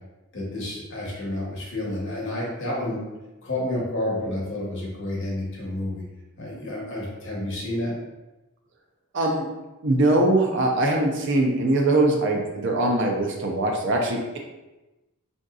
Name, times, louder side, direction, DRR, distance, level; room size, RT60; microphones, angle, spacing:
voice 1, 0.3-3.0 3.4-6.0 6.4-7.9, left 1 dB, 55° left, -4 dB, 0.9 m, -30 dB
voice 2, 9.1-9.5 9.8-14.4, right 2 dB, 55° right, 1 dB, 0.5 m, -22 dB
3.7 x 2.6 x 2.3 m, 1.1 s
head